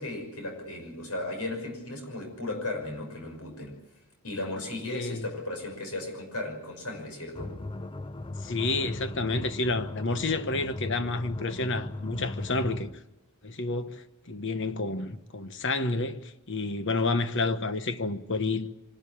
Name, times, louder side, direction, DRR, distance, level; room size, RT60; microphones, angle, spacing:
voice 1, 0.0-3.8 4.2-7.5, left 2 dB, 90° left, 6.1 m, -36 dB
voice 2, 4.9-5.2 8.4-12.9 13.4-18.7, left 3 dB, 55° left, 1.1 m, -30 dB
sound 1, 7.3-13.0, left 2 dB, 20° left, 0.6 m, -38 dB
25.5 x 12.5 x 8.6 m
head